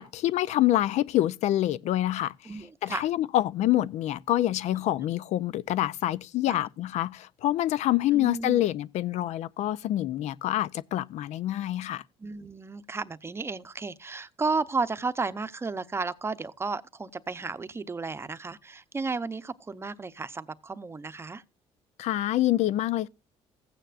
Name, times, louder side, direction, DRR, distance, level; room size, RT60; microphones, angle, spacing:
voice 1, 0.0-2.3 2.8-12.0 22.0-23.1, left 14 dB, 70° left, 0.5 m, -26 dB
voice 2, 2.4-3.1 6.5-6.6 8.1-8.6 12.2-21.4, right 4 dB, 20° right, 0.7 m, -33 dB
15.0 x 9.1 x 2.5 m
cardioid pair, 110°, 12 cm